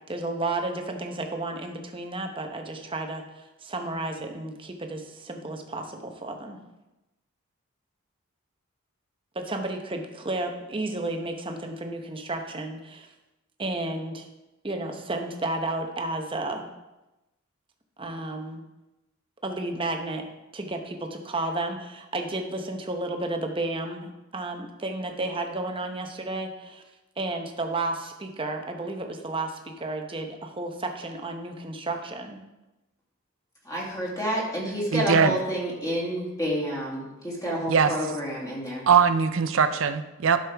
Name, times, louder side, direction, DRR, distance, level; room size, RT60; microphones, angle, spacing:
voice 1, 0.1-6.6 9.3-13.1 13.6-14.3 14.6-16.7 18.0-18.6 19.4-20.2 20.5-26.8 27.2-32.4, right 2 dB, 25° right, 4 dB, 0.8 m, -32 dB
voice 2, 33.7-38.8, equal, 15° left, -4 dB, 2.2 m, -29 dB
voice 3, 34.9-35.4 37.7-37.9 38.9-40.4, right 6 dB, 65° right, 10 dB, 0.5 m, -21 dB
11.5 x 6.3 x 3.4 m, 1.0 s
head